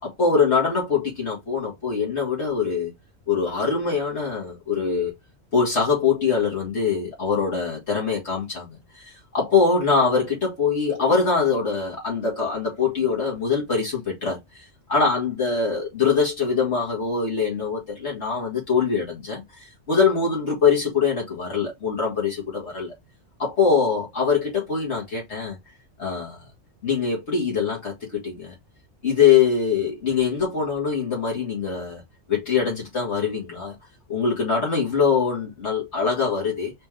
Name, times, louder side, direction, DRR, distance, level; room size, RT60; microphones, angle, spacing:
voice 1, 0.0-2.9 3.3-5.1 5.5-22.9 23.4-25.6 26.0-26.4 26.8-28.5 29.0-32.0 32.3-33.7 34.1-36.7, left 5 dB, 65° left, 2.2 m, -23 dB
4.2 x 3.3 x 3.6 m
omnidirectional pair, 1.2 m